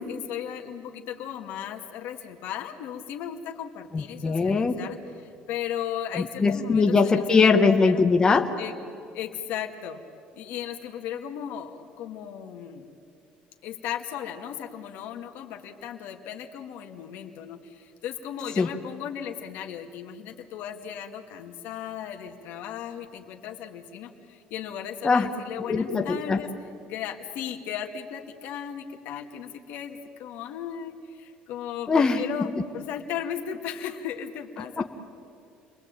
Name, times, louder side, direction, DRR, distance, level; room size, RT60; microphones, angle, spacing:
voice 1, 0.1-7.5 7.8-8.0 8.6-8.8 9.1-10.0 10.3-12.9 13.6-26.5 26.9-34.8, left 9 dB, 75° left, 3 dB, 2.2 m, -36 dB
voice 2, 3.9-4.8 6.1-8.5 18.6-18.7 25.0-25.3 25.7-26.4 31.9-32.5 34.8-34.9, left 4 dB, 20° left, 4 dB, 1.3 m, -21 dB
30.0 x 21.5 x 9.0 m, 2.5 s
cardioid pair, 130°, 3 cm